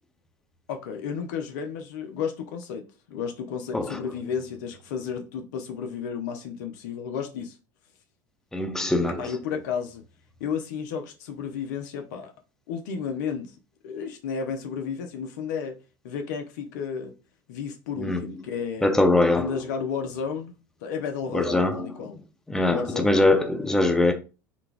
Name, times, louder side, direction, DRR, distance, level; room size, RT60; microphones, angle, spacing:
voice 1, 0.7-7.6 9.1-10.0 10.4-12.3 12.7-13.5 13.8-15.8 16.0-17.1 17.5-19.0 19.3-20.5 20.8-22.2 22.7-23.1, left 6 dB, 70° left, 0.6 m, -32 dB
voice 2, 8.5-9.2 18.0-18.2 18.8-19.5 21.3-21.9 22.5-24.1, left 2 dB, 5° left, 0.5 m, -22 dB
3.9 x 2.3 x 2.4 m
hypercardioid pair, 75°, 10 cm